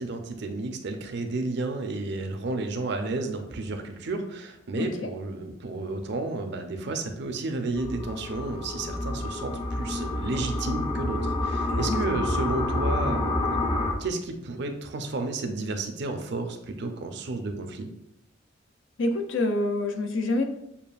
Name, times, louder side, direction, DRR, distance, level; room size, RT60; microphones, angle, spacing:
voice 1, 0.0-17.9, right 2 dB, 65° right, 6 dB, 0.5 m, -32 dB
voice 2, 4.8-5.1 11.7-12.0 19.0-20.4, left 2 dB, 85° left, 5 dB, 0.5 m, -27 dB
sound 1, 7.8-13.9, left 2 dB, 25° left, 0.4 m, -28 dB
6.8 x 2.4 x 2.4 m, 0.85 s
head